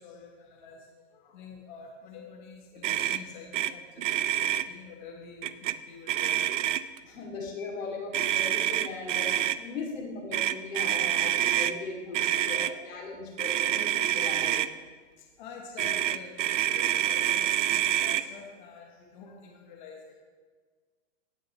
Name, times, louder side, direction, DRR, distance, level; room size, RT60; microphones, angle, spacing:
voice 1, 0.0-4.1 4.4-6.4 7.1-7.2 14.2-14.3 15.1-20.2, left 5 dB, 40° left, 0 dB, 1.3 m, -47 dB
Motor vehicle (road), 2.8-3.2 3.5-3.7 4.0-4.6 5.4-5.7 6.1-7.0 8.1-9.6 10.3-11.7 12.1-12.7 13.4-14.7 15.8-18.2, right 12 dB, 70° right, 0.5 m, -27 dB
voice 2, 7.0-14.6, left 3 dB, 90° left, 0 dB, 2.8 m, -38 dB
16.5 x 6.1 x 3.2 m, 1.5 s
hypercardioid pair, 170°, 38 cm